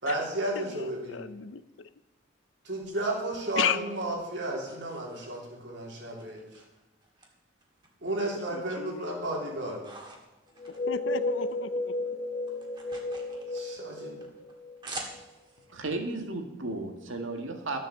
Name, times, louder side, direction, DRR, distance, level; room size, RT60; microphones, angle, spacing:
voice 1, 0.0-1.2 2.6-6.4 8.0-9.8 13.5-14.2, right 1 dB, 60° right, -1 dB, 3.5 m, -33 dB
voice 2, 0.6-1.9 3.6-3.8 8.5-9.2 10.9-11.9, left 8 dB, 70° left, 14 dB, 0.6 m, -33 dB
sound 1, 2.8-5.7 6.2-7.3 7.6-8.6 9.0-11.6 11.8-15.7, right 2 dB, 25° right, 2.0 m, -47 dB
Mystery chime, 10.6-15.2, left 2 dB, 25° left, 1.9 m, -33 dB
voice 3, 15.7-17.8, right 2 dB, 75° right, 4 dB, 1.9 m, -34 dB
13.0 x 7.6 x 7.3 m, 1.0 s
head